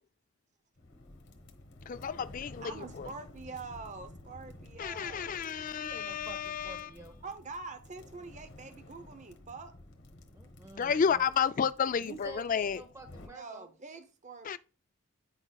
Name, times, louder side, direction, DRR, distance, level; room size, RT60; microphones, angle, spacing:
sound 1, 0.8-13.3, left 1 dB, 55° left, 1.1 m, -52 dB
voice 1, 1.9-3.1 4.8-6.9 10.7-12.8 14.4-14.6, left 7 dB, 40° left, 0.3 m, -31 dB
voice 2, 2.6-5.4 7.2-9.7 13.2-14.6, right 4 dB, 35° right, 0.7 m, -45 dB
voice 3, 5.7-7.2 10.3-11.3 12.0-13.7, right 2 dB, 15° right, 1.1 m, -49 dB
8.9 x 5.9 x 2.3 m
head